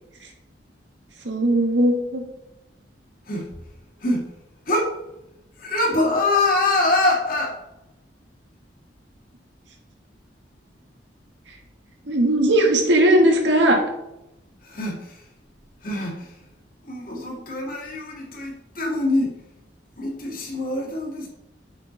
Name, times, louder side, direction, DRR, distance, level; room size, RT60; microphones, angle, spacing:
voice 1, 1.2-2.2 12.1-13.8, right 1 dB, 75° right, 2 dB, 1.7 m, -18 dB
voice 2, 5.6-7.6 14.6-15.2 15.8-16.3 16.9-19.3 20.0-21.3, left 2 dB, 50° left, -2 dB, 2.2 m, -24 dB
8.1 x 6.0 x 4.0 m, 0.90 s
head